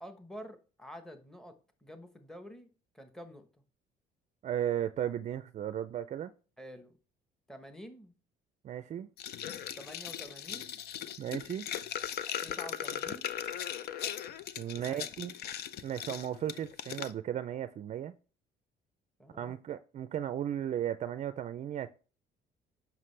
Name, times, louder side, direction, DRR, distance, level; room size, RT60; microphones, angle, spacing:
voice 1, 0.0-1.5 1.8-2.7 2.9-3.5 6.6-7.0 7.5-8.1 9.8-10.8 12.4-13.4 14.7-15.1 19.2-19.6, equal, 5° left, 1.0 m, -48 dB
voice 2, 4.4-6.3 8.6-9.1 11.2-11.7 14.6-15.3 15.8-18.1 19.3-21.9, right 10 dB, 45° right, 0.4 m, -35 dB
sound 1, 9.2-17.1, left 10 dB, 70° left, 0.6 m, -39 dB
7.5 x 5.9 x 3.2 m
cardioid pair, 110°, 17 cm